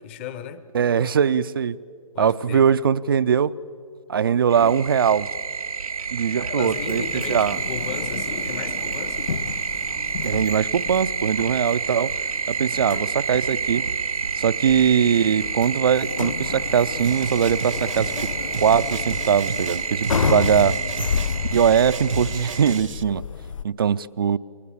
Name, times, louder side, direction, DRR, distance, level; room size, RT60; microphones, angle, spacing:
voice 1, 0.0-0.7 2.1-2.7 6.4-9.3 12.5-12.9, left 8 dB, 20° left, 13 dB, 0.9 m, -35 dB
voice 2, 0.7-1.8 2.2-3.5 4.1-5.3 6.1-7.0 7.3-7.6 10.2-12.1 12.5-13.9 14.4-18.1 18.6-20.8 21.5-23.2 23.6-24.4, right 7 dB, 40° right, 17 dB, 0.5 m, -21 dB
sound 1, 4.5-22.8, right 5 dB, 85° right, 0.6 m, -29 dB
sound 2, 6.7-23.6, left 6 dB, 65° left, 0.5 m, -31 dB
sound 3, 17.0-23.0, right 6 dB, 60° right, 0.9 m, -33 dB
29.0 x 22.5 x 7.1 m, 2.4 s
figure-of-eight pair, 150°, 18 cm